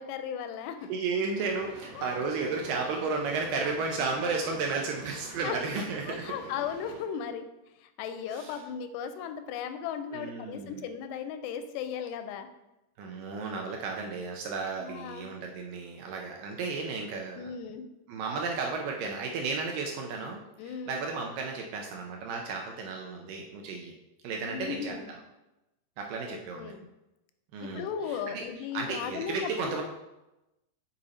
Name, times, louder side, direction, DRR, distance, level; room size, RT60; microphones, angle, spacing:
voice 1, 0.0-0.9 2.0-2.2 5.4-7.5 7.8-12.5 14.8-15.3 17.4-17.9 20.6-21.0 24.5-25.1 26.2-26.9 27.6-29.7, left 7 dB, 90° left, 9 dB, 2.7 m, -37 dB
voice 2, 0.9-6.4 8.3-8.6 10.1-10.9 13.0-17.5 18.1-23.9 24.2-25.2 26.0-26.7 27.5-28.5 28.7-29.8, right 4 dB, 85° right, 1 dB, 2.0 m, -33 dB
sound 1, 1.4-7.0, right 2 dB, 55° right, 2.7 m, -47 dB
7.0 x 5.3 x 4.1 m, 0.97 s
omnidirectional pair, 4.8 m